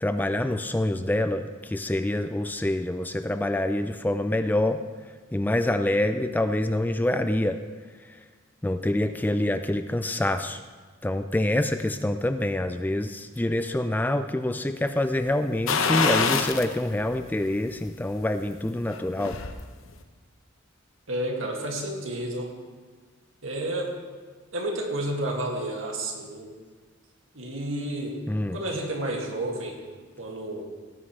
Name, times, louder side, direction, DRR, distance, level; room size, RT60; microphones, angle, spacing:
voice 1, 0.0-4.8 5.3-7.6 8.1-8.2 8.6-10.6 11.0-19.4 28.3-28.6, left 1 dB, 10° left, 9 dB, 0.3 m, -26 dB
sound 1, 15.7-16.7 17.2-17.3 18.8-19.6 19.9-20.0, left 5 dB, 80° left, 0.9 m, -25 dB
voice 2, 21.1-22.5 23.4-24.0 24.5-26.5 27.3-28.2 28.5-29.8 30.2-30.6, right 1 dB, 75° right, 0 dB, 2.2 m, -31 dB
18.0 x 9.9 x 3.2 m, 1.5 s
head